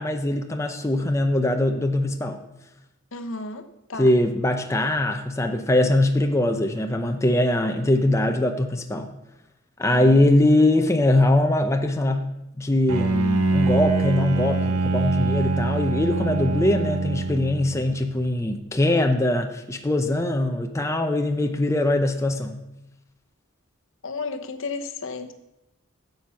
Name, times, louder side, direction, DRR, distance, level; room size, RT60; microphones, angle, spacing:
voice 1, 0.0-2.4 4.0-9.1 9.8-12.3 12.6-22.6, left 1 dB, 15° left, 5 dB, 0.6 m, -22 dB
voice 2, 3.1-4.1 9.8-10.3 24.0-25.3, left 3 dB, 60° left, 7 dB, 1.0 m, -33 dB
Bowed string instrument, 12.9-17.8, right 3 dB, 85° right, 1.0 m, -24 dB
11.5 x 7.9 x 5.7 m, 0.89 s
head